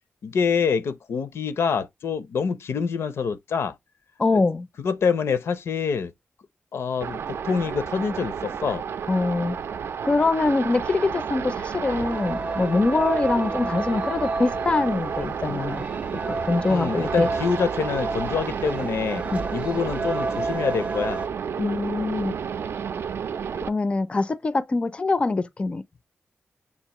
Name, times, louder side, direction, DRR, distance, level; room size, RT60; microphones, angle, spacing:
voice 1, 0.2-3.7 4.3-4.4 4.8-6.1 6.7-8.8 16.7-19.2 19.5-21.2, left 6 dB, 80° left, 0.6 m, -26 dB
voice 2, 4.2-4.7 9.1-9.6 10.0-15.9 16.3-17.3 19.2-19.4 21.6-22.3 23.6-25.8, left 3 dB, 25° left, 0.4 m, -24 dB
sound 1, 7.0-23.7, right 7 dB, 75° right, 0.4 m, -31 dB
Tangier-call to prayer, 11.9-21.3, right 3 dB, 30° right, 0.6 m, -31 dB
6.7 x 2.5 x 2.9 m
wide cardioid pair, 145°, 4 cm